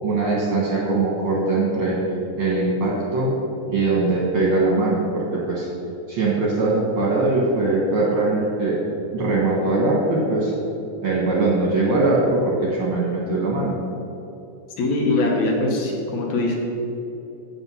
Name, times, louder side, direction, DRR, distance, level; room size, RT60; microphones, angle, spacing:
voice 1, 0.0-2.0 2.4-3.4 3.7-5.7 6.1-8.8 9.1-10.5 11.0-13.8, right 2 dB, 55° right, -4 dB, 1.7 m, -21 dB
voice 2, 14.8-16.6, left 2 dB, 70° left, 0 dB, 2.4 m, -22 dB
8.0 x 7.7 x 5.5 m, 2.9 s
omnidirectional pair, 3.6 m